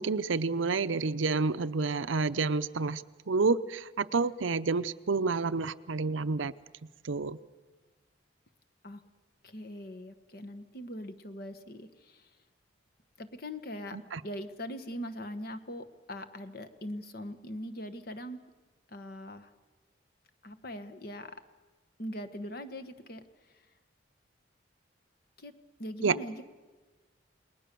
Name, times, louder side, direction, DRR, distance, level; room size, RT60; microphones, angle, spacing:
voice 1, 0.0-6.5 7.0-7.4 13.9-14.2 26.0-26.2, right 4 dB, 85° right, 13 dB, 0.7 m, -29 dB
voice 2, 9.4-12.3 13.2-14.0 14.2-18.4 18.9-19.5 20.4-21.4 22.0-23.2 23.5-23.6 25.4-25.5 25.8-26.5, equal, 50° left, 9 dB, 1.3 m, -41 dB
29.0 x 20.0 x 6.9 m, 1.3 s
head